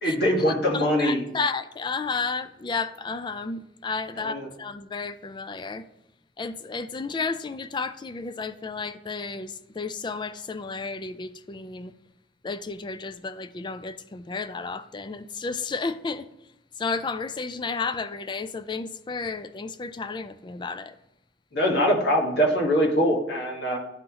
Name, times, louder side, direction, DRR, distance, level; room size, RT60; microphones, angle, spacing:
voice 1, 0.0-1.2 4.2-4.5 21.5-23.8, equal, 70° left, 1.5 m, -23 dB
voice 2, 0.7-5.9 6.4-11.9 12.4-16.3 16.8-20.9, left 4 dB, 25° left, 0.3 m, -32 dB
10.5 x 3.9 x 2.9 m
head